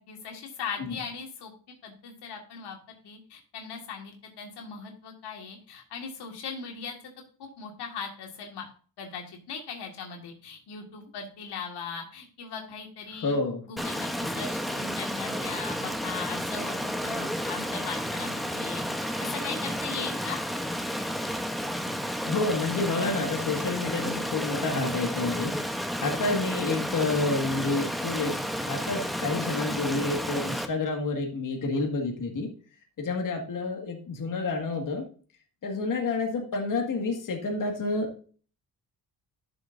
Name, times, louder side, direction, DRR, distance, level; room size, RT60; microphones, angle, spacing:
voice 1, 0.0-1.5 1.8-7.0 7.4-8.7 9.0-13.4 13.7-20.4, left 5 dB, 85° left, 2 dB, 2.0 m, -39 dB
voice 2, 13.1-13.6 22.3-32.5 33.0-35.0 35.6-38.2, left 3 dB, 55° left, 2 dB, 1.9 m, -29 dB
Stream, 13.8-30.7, equal, ahead, 0.9 m, -32 dB
11.5 x 6.6 x 2.6 m, 0.41 s
cardioid pair, 120°, 39 cm